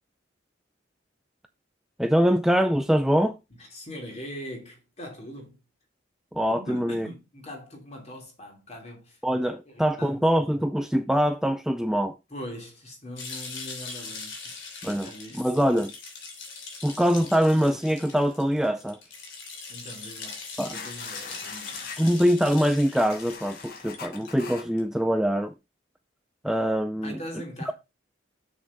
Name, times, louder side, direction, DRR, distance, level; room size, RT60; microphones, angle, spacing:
voice 1, 2.0-3.3 6.3-7.1 9.2-12.2 14.8-15.9 16.8-19.0 20.6-20.8 22.0-25.5 26.4-27.2, equal, ahead, 0.4 m, -23 dB
voice 2, 3.6-5.6 6.5-9.2 9.7-10.2 12.3-14.6 15.0-15.5 19.7-21.9 27.0-27.7, equal, 35° left, 3.1 m, -41 dB
sound 1, 13.2-24.8, left 4 dB, 80° left, 3.2 m, -41 dB
sound 2, 20.7-22.0 22.7-24.7, left 5 dB, 50° left, 1.2 m, -42 dB
7.3 x 6.3 x 4.2 m
head